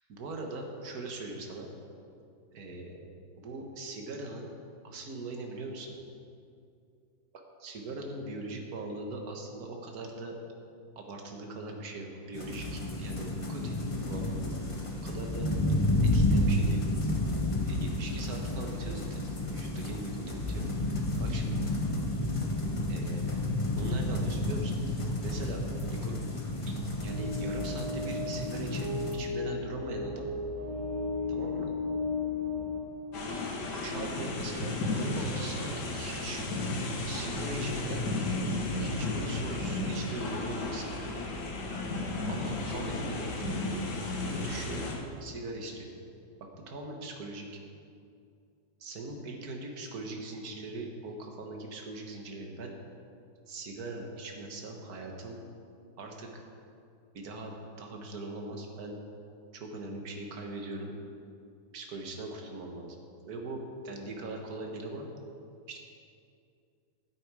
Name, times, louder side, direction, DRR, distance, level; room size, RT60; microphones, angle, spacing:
voice 1, 0.1-1.7 2.5-3.0 3.4-4.5 4.8-5.9 7.6-10.4 10.9-13.8 14.1-14.6 15.0-15.5 16.1-16.8 17.7-19.2 19.5-20.6 21.2-21.6 22.9-23.4 23.8-24.7 25.2-25.6 25.9-26.2 26.7-30.3 31.3-31.7 33.7-36.4 37.1-38.0 38.8-41.4 42.3-43.8 44.0-44.8 45.2-45.9 46.6-47.5 48.8-52.7 53.5-55.4 56.0-56.4 57.1-59.0 59.5-60.9 61.7-63.0 63.3-65.1 65.7-65.8, right 2 dB, 55° right, 2 dB, 1.7 m, -41 dB
sound 1, 12.3-29.1, left 1 dB, 25° left, 0.8 m, -31 dB
sound 2, 26.8-33.7, left 3 dB, 30° right, 1.4 m, -35 dB
sound 3, 33.1-44.9, left 2 dB, 60° left, 1.9 m, -33 dB
12.0 x 9.1 x 4.8 m, 2.5 s
omnidirectional pair, 2.1 m